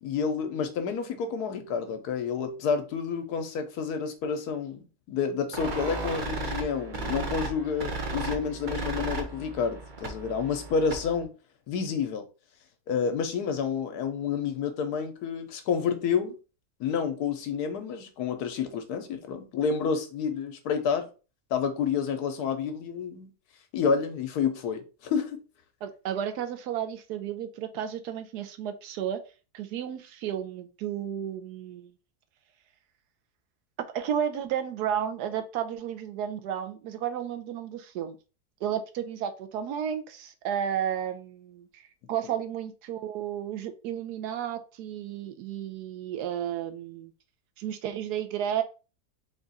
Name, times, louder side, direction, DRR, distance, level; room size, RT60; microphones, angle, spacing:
voice 1, 0.0-11.3 11.7-12.2 12.9-16.4 16.8-21.0 21.5-23.3 23.7-25.4, left 6 dB, 75° left, 1.2 m, -29 dB
sound 1, 5.5-11.2, right 3 dB, 40° right, 0.7 m, -35 dB
voice 2, 25.8-29.2 29.5-31.9 33.9-38.2 38.6-41.8 42.1-47.1 47.6-48.6, right 9 dB, 80° right, 1.1 m, -32 dB
3.7 x 2.4 x 4.0 m
omnidirectional pair, 1.7 m